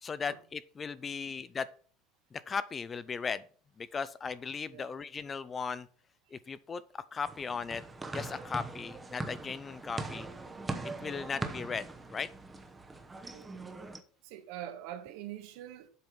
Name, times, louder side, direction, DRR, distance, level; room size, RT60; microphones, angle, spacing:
voice 1, 0.0-1.7 2.3-3.4 3.8-5.9 6.3-6.8 7.1-7.8 8.1-10.3 11.0-12.3, left 5 dB, 20° left, 0.4 m, -37 dB
sound 1, 7.3-14.0, right 3 dB, 10° right, 0.8 m, -41 dB
voice 2, 14.2-15.9, right 11 dB, 70° right, 1.4 m, -44 dB
7.6 x 5.4 x 5.7 m
cardioid pair, 160°, 0 cm